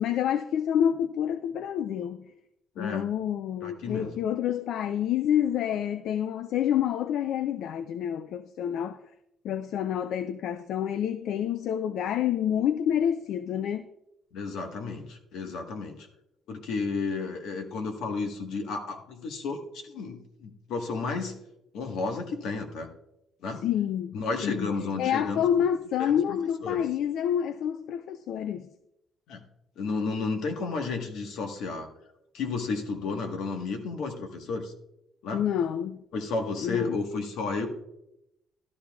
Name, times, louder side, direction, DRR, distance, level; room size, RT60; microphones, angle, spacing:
voice 1, 0.0-2.2 2.8-9.0 9.4-13.9 23.6-24.1 24.4-24.7 25.0-28.7 35.3-36.0 36.6-37.0, left 9 dB, 70° left, 0.4 m, -28 dB
voice 2, 2.7-3.1 3.6-4.2 14.3-16.1 16.5-21.3 21.7-22.9 23.4-23.6 24.1-25.4 26.0-26.4 26.6-26.8 29.3-29.4 29.8-31.9 32.3-34.7 35.2-35.4 36.1-37.7, left 4 dB, 90° left, 1.4 m, -32 dB
13.0 x 12.0 x 2.4 m
cardioid pair, 150°, 0 cm